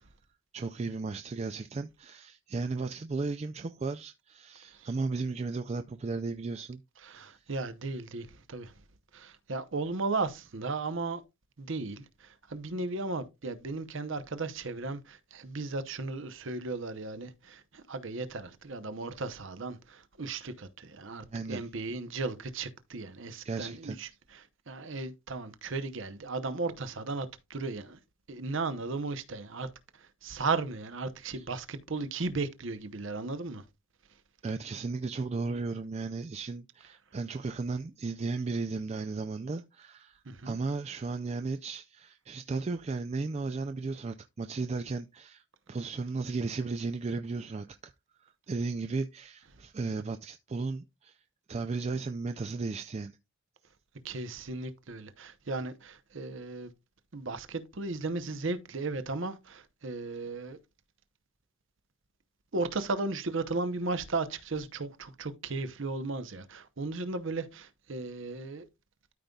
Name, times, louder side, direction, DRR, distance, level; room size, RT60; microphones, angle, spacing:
voice 1, 0.5-6.8 7.2-7.4 21.3-21.7 23.4-24.0 31.3-31.5 34.4-47.9 48.2-51.2 51.5-53.2, right 3 dB, 30° right, 0.3 m, -35 dB
voice 2, 7.0-8.7 9.1-11.2 11.6-28.0 28.3-29.7 29.9-33.6 40.2-40.6 54.0-56.7 57.1-60.6 62.5-68.7, right 3 dB, 60° right, 0.8 m, -36 dB
13.0 x 5.2 x 2.3 m
head